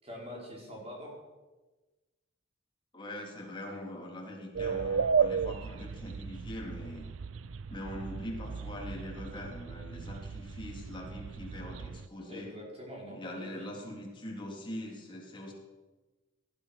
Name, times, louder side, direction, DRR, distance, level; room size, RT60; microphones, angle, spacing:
voice 1, 0.0-1.1 12.2-13.7, equal, 30° right, -2 dB, 5.0 m, -44 dB
voice 2, 2.9-7.1 7.7-12.5 13.1-15.5, left 1 dB, 25° left, -1 dB, 3.5 m, -42 dB
sound 1, 4.5-12.1, right 6 dB, 85° right, 0.5 m, -34 dB
18.5 x 12.0 x 6.0 m, 1.2 s
head